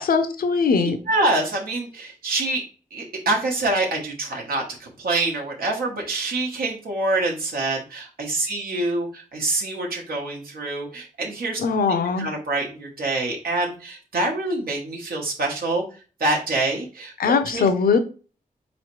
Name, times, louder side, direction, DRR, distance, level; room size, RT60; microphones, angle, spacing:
voice 1, 0.0-1.0 11.6-12.3 17.2-18.0, left 5 dB, 80° left, 8 dB, 0.6 m, -20 dB
voice 2, 1.1-2.6 2.9-11.6 12.2-15.8 16.2-17.7, right 2 dB, 90° right, -1 dB, 1.0 m, -26 dB
4.2 x 3.1 x 3.0 m, 0.35 s
wide cardioid pair, 150°, 15 cm